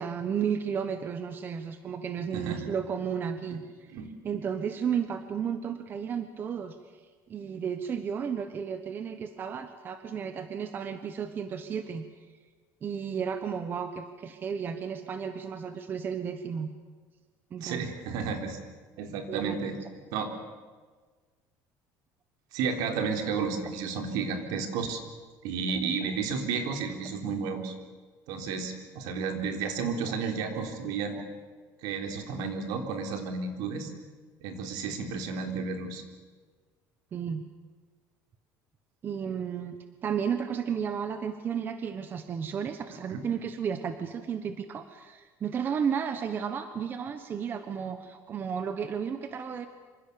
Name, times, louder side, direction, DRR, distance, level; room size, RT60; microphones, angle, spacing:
voice 1, 0.0-3.9 4.2-6.8 7.3-12.3 12.8-16.7 17.5-17.9 19.3-19.6 31.1-31.2 37.1-37.4 39.0-39.8 40.0-49.7, right 7 dB, 30° right, 9 dB, 1.2 m, -33 dB
voice 2, 2.3-2.7 3.9-4.1 17.6-18.6 19.0-19.8 20.1-20.3 22.5-25.0 25.4-27.7 28.3-31.2 31.8-33.9 34.4-36.0 43.1-43.2, right 5 dB, 70° right, 4 dB, 3.8 m, -32 dB
26.5 x 25.5 x 7.0 m, 1.4 s
cardioid pair, 170°, 7 cm